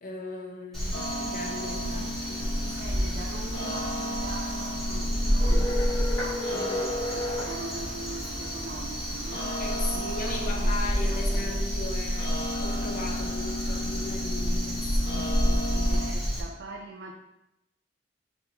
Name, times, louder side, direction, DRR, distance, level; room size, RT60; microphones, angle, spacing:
voice 1, 0.0-2.4 6.5-6.8 9.6-16.0, left 2 dB, 50° left, 1 dB, 0.7 m, -38 dB
Crow, 0.7-16.4, equal, ahead, 1.1 m, -29 dB
sound 1, 0.9-16.1, left 1 dB, 85° left, 0.9 m, -36 dB
voice 2, 1.8-2.2 2.6-6.8 7.1-11.5 15.9-17.1, right 3 dB, 65° right, 2 dB, 0.4 m, -42 dB
sound 2, 5.4-7.5, left 2 dB, 20° left, 1.2 m, -32 dB
4.0 x 3.9 x 2.8 m, 0.89 s
head